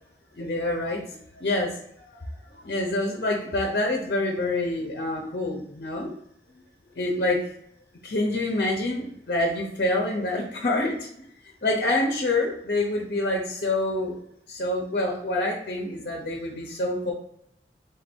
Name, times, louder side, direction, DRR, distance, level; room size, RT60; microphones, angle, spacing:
voice 1, 0.3-1.8 2.1-2.2 2.6-6.1 7.0-7.4 8.0-11.1 11.6-14.1 14.5-17.1, left 2 dB, 55° left, 0 dB, 0.7 m, -26 dB
3.8 x 2.6 x 4.2 m, 0.73 s
head